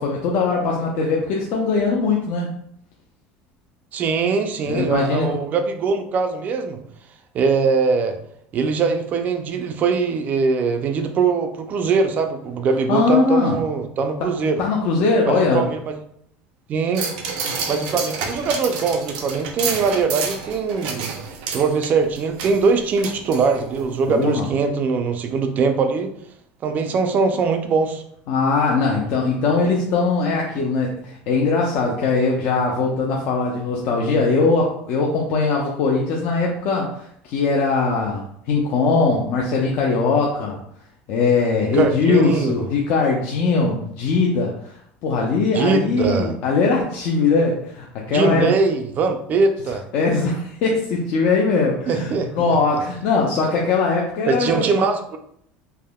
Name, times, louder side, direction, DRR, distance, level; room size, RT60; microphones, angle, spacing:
voice 1, 0.0-2.5 4.7-5.3 12.9-13.5 14.6-15.6 24.1-24.5 28.3-40.6 41.1-44.8 45.0-48.5 49.9-54.7, left 4 dB, 55° left, -2 dB, 0.5 m, -20 dB
voice 2, 3.9-6.8 7.3-8.2 8.5-14.6 15.3-16.0 16.7-17.1 17.7-21.1 21.5-26.1 26.6-28.0 41.7-42.6 45.5-46.4 48.1-49.8 51.9-52.6 54.3-55.2, right 4 dB, 35° right, 6 dB, 0.3 m, -21 dB
sound 1, 16.9-23.8 24.2-24.3, right 5 dB, 90° right, 0.5 m, -29 dB
3.4 x 2.0 x 2.2 m, 0.68 s
cardioid pair, 140°, 5 cm